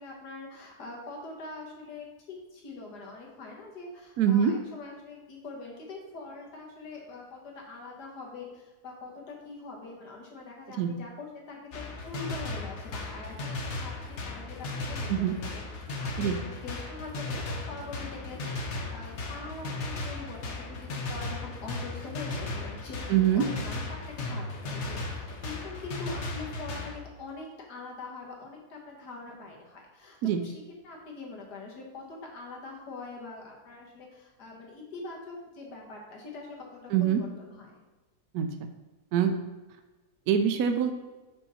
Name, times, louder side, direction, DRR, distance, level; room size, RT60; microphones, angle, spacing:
voice 1, 0.0-37.8, left 3 dB, 85° left, -1 dB, 1.9 m, -43 dB
voice 2, 4.2-4.5 10.8-11.0 15.1-15.4 16.2-16.4 23.1-23.5 30.2-30.4 36.9-37.2 38.3-38.5 39.1-39.4 40.3-40.9, right 8 dB, 75° right, 7 dB, 1.1 m, -24 dB
sound 1, 11.7-27.0, left 2 dB, 50° left, 1.0 m, -36 dB
5.6 x 5.4 x 4.2 m, 1.2 s
omnidirectional pair, 1.7 m